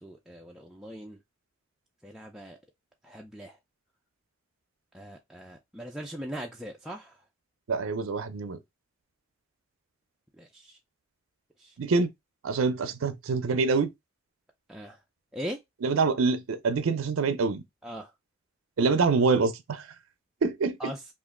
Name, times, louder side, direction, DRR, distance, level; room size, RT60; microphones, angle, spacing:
voice 1, 0.0-1.2 2.0-2.6 3.0-3.6 4.9-7.1 10.4-10.8 14.7-15.0 15.3-15.6 17.8-18.1 20.8-21.0, equal, 5° right, 0.3 m, -40 dB
voice 2, 7.7-8.6 11.8-12.1 12.4-13.9 15.8-17.6 18.8-19.8 20.4-20.9, right 4 dB, 70° right, 0.5 m, -25 dB
3.0 x 2.4 x 3.5 m
head